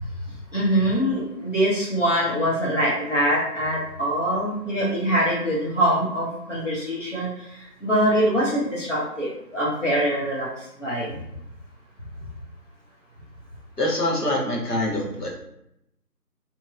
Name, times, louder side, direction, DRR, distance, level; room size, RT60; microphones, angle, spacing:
voice 1, 0.5-7.3 7.5-10.5 10.8-11.1, right 1 dB, 50° left, -5 dB, 1.2 m, -23 dB
voice 2, 13.8-15.3, left 1 dB, 70° left, -3 dB, 1.2 m, -24 dB
3.0 x 2.5 x 2.4 m, 0.80 s
figure-of-eight pair, 175°, 49 cm